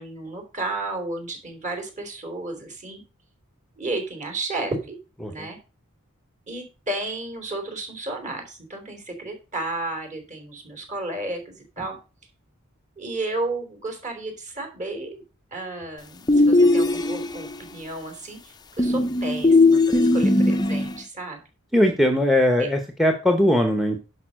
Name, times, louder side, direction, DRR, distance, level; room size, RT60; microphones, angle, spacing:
voice 1, 0.0-3.0 3.8-5.0 5.3-5.6 6.5-12.0 13.0-15.2 15.5-21.4, right 2 dB, 35° right, 4 dB, 3.4 m, -32 dB
sound 1, 16.3-17.5 18.8-21.0, left 2 dB, 20° left, 0.6 m, -18 dB
voice 2, 21.7-24.0, left 1 dB, ahead, 6 dB, 0.9 m, -20 dB
11.0 x 5.4 x 6.3 m, 0.32 s
head